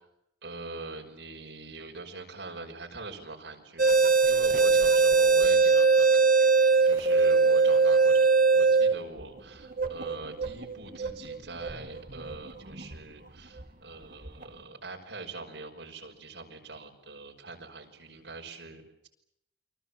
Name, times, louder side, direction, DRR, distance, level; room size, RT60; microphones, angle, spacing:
voice 1, 0.4-4.0 4.2-19.1, right 3 dB, 85° right, 1 dB, 5.9 m, -43 dB
sound 1, 3.8-13.0 13.6-13.7 14.2-14.4, right 4 dB, 50° right, 2.1 m, -22 dB
29.5 x 24.5 x 7.4 m, 0.79 s
head